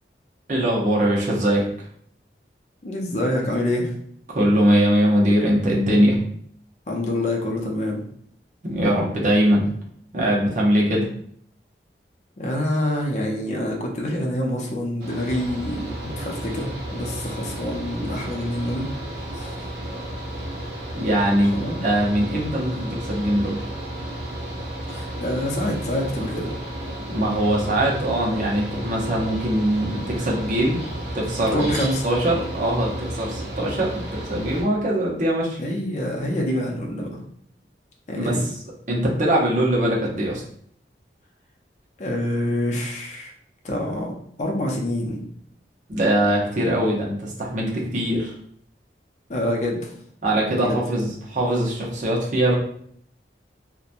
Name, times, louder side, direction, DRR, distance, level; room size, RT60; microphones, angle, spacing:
voice 1, 0.5-1.7 4.3-6.2 8.6-9.7 10.1-11.1 21.0-21.5 21.8-23.6 27.1-30.8 31.1-31.7 32.0-35.6 38.2-38.4 38.9-40.4 45.9-48.3 50.2-52.5, right 1 dB, 45° right, -3 dB, 0.7 m, -21 dB
voice 2, 2.8-3.9 6.9-8.0 12.4-18.9 19.3-19.6 21.5-21.8 24.9-26.5 31.5-32.0 35.6-37.2 38.1-38.5 42.0-43.3 43.6-44.1 44.4-45.2 49.3-49.9 50.6-50.7, left 1 dB, 40° left, 0 dB, 0.5 m, -26 dB
Mechanical fan, 15.0-34.6, right 1 dB, 75° right, 0.7 m, -33 dB
2.8 x 2.2 x 2.5 m, 0.64 s
head